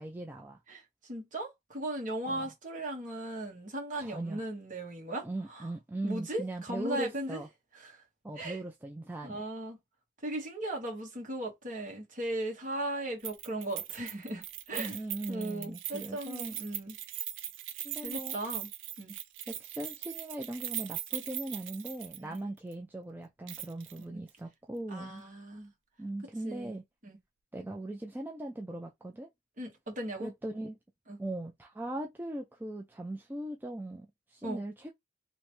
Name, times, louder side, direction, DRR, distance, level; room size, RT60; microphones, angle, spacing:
voice 1, 0.0-0.6 2.3-2.5 4.0-4.4 5.2-7.5 8.2-9.4 14.7-16.6 17.8-18.4 19.5-25.2 26.0-26.8 27.5-29.3 30.2-30.8 31.2-34.9, right 1 dB, 10° right, 0.3 m, -39 dB
voice 2, 0.7-5.7 6.0-7.4 7.7-8.0 8.4-8.6 9.2-9.8 10.2-15.0 15.3-16.9 18.0-18.7 19.0-19.2 22.2-22.5 24.1-24.2 24.9-25.7 26.4-26.7 27.0-27.2 29.6-30.3 31.1-31.2 34.4-34.6, right 1 dB, 40° right, 1.4 m, -37 dB
Keys jangling, 13.2-22.4 22.7-22.8 23.5-24.0 24.3-24.4, right 12 dB, 70° right, 0.5 m, -40 dB
3.2 x 3.0 x 3.1 m
head